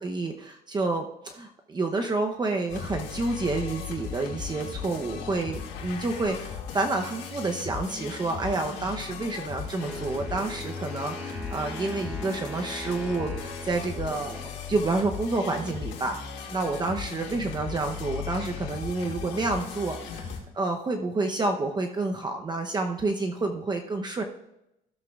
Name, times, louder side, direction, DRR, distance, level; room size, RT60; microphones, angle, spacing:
voice 1, 0.0-14.4 14.7-16.2 16.5-24.2, right 3 dB, 25° right, 4 dB, 0.8 m, -29 dB
sound 1, 2.7-20.4, left 7 dB, 90° left, 2.2 m, -37 dB
Wind instrument woodwind instrument, 9.8-14.8, equal, 5° right, 2.7 m, -41 dB
15.0 x 7.6 x 2.4 m, 0.84 s
cardioid pair, 110°, 17 cm